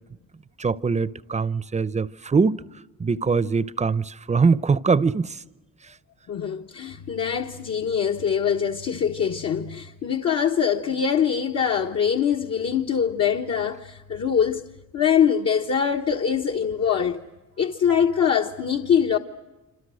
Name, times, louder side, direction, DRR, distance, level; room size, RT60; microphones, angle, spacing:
voice 1, 0.6-2.6 3.0-5.4 5.8-5.9, right 4 dB, 25° right, 0.7 m, -22 dB
voice 2, 6.3-14.6 14.9-17.2 17.6-19.2, left 7 dB, 55° left, 1.3 m, -23 dB
26.5 x 26.5 x 6.4 m
cardioid pair, 90°, 30 cm